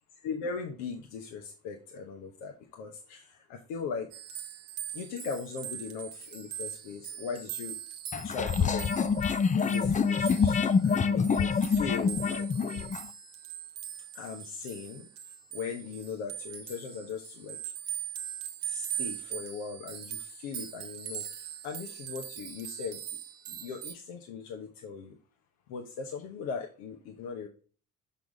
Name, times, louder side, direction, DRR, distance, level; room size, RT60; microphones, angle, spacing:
voice 1, 0.2-4.1 4.9-7.7 8.2-9.2 9.5-12.9 14.1-15.1 15.5-17.6 18.6-23.0 23.5-25.2 25.7-27.5, left 5 dB, 70° left, 3 dB, 1.1 m, -39 dB
sound 1, 4.1-23.9, right 9 dB, 60° right, 1.1 m, -41 dB
sound 2, 8.1-13.1, left 5 dB, 20° left, 0.5 m, -26 dB
6.1 x 5.8 x 3.5 m, 0.38 s
hypercardioid pair, 55°, 39 cm